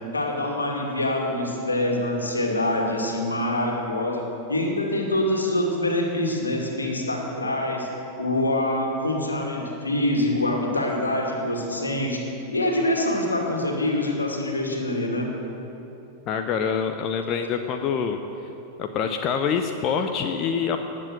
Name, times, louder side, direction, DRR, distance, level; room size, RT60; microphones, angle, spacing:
voice 1, 0.1-7.9 8.2-12.2 12.5-15.3, left 1 dB, 80° left, 0 dB, 2.4 m, -25 dB
voice 2, 16.3-18.2 18.8-20.8, left 6 dB, 35° left, 6 dB, 0.8 m, -25 dB
19.5 x 7.7 x 7.9 m, 3.0 s
figure-of-eight pair, 90°, 0 cm